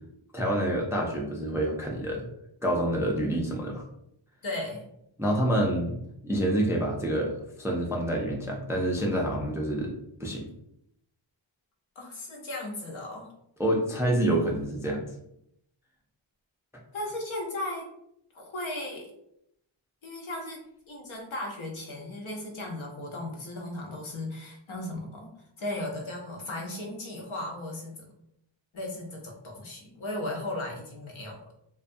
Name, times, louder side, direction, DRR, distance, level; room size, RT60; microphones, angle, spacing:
voice 1, 0.3-2.3 2.6-3.8 5.2-9.9 10.2-10.5 13.6-15.1, right 1 dB, 5° right, -1 dB, 0.3 m, -27 dB
voice 2, 4.4-4.8 12.0-13.3 16.9-17.9 18.3-19.1 20.0-25.3 25.6-28.0 28.7-31.5, left 1 dB, 70° left, 0 dB, 0.8 m, -36 dB
2.3 x 2.3 x 2.5 m, 0.77 s
wide cardioid pair, 85°, 49 cm